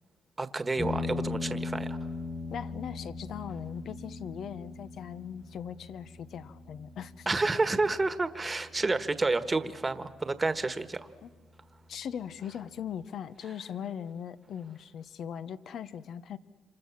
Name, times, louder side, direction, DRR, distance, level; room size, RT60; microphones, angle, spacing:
voice 1, 0.4-2.0 7.3-11.1, right 3 dB, 25° right, 10 dB, 1.5 m, -29 dB
sound 1, 0.8-9.8, left 3 dB, 15° left, 1.6 m, -39 dB
voice 2, 2.5-7.3 11.2-11.3 11.9-16.4, left 8 dB, 65° left, 14 dB, 0.9 m, -39 dB
28.0 x 26.5 x 7.3 m, 1.3 s
cardioid pair, 90°, 0 cm